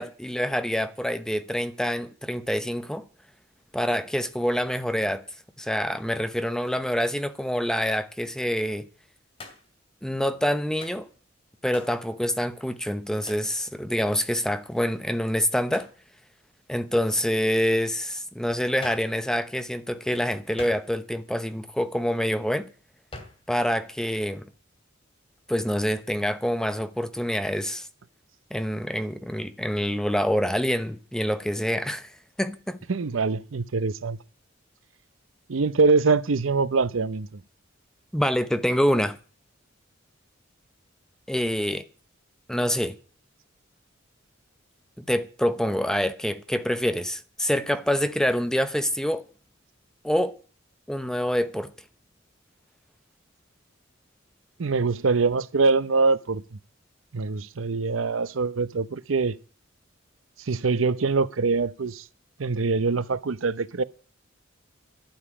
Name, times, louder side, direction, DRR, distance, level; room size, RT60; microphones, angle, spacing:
voice 1, 0.0-3.0 3.7-5.2 5.6-8.8 10.0-11.1 11.6-15.9 16.7-22.7 23.5-24.5 25.5-27.9 28.5-32.1 32.4-32.8 38.1-39.2 41.3-41.8 42.5-43.0 45.0-49.2 50.0-50.3 50.9-51.7, equal, 5° left, 0.8 m, -26 dB
Hands, 9.4-9.8 10.8-11.1 11.7-12.0 13.3-13.5 15.7-16.0 18.8-19.2 20.6-21.2 23.1-23.5, left 2 dB, 30° left, 2.7 m, -43 dB
voice 2, 32.9-34.2 35.5-37.3 54.6-56.6 57.1-59.3 60.4-62.0 62.4-63.8, right 4 dB, 85° right, 0.7 m, -24 dB
12.0 x 7.2 x 9.8 m
head